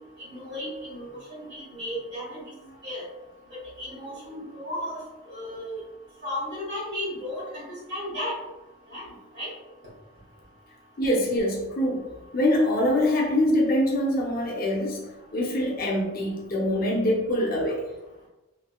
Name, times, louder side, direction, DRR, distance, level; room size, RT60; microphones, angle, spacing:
voice 1, 0.2-2.5 2.8-3.1 3.5-5.7 6.2-8.4 8.9-9.5, left 1 dB, 55° right, -8 dB, 1.5 m, -35 dB
voice 2, 11.0-12.0 12.3-17.8, left 1 dB, 40° left, -2 dB, 0.7 m, -24 dB
3.2 x 3.2 x 2.3 m, 1.0 s
head